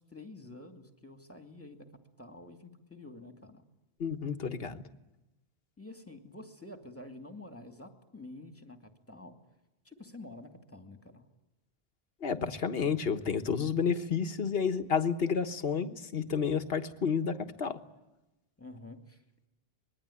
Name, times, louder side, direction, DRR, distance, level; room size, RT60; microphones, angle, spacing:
voice 1, 0.0-1.9 2.2-3.6 5.8-9.4 9.8-11.2 18.6-19.2, left 2 dB, 15° left, 6 dB, 2.5 m, -49 dB
voice 2, 4.0-4.8 12.2-17.8, left 6 dB, 65° left, 11 dB, 1.6 m, -30 dB
25.5 x 21.5 x 10.0 m, 1.0 s
omnidirectional pair, 1.1 m